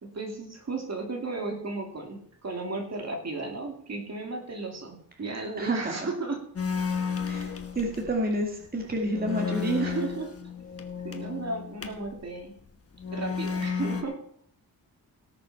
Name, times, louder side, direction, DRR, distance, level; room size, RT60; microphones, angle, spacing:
voice 1, 0.0-6.4 9.8-10.3 11.0-12.6 13.1-14.2, right 3 dB, 45° right, 2 dB, 2.5 m, -34 dB
voice 2, 5.6-5.9 7.2-9.9, right 1 dB, 25° right, 0 dB, 2.2 m, -29 dB
sound 1, 6.6-8.2 8.6-8.7 9.0-12.1 12.9-14.0, left 6 dB, 40° left, 1.2 m, -32 dB
18.0 x 6.7 x 5.9 m, 0.63 s
wide cardioid pair, 170°, 37 cm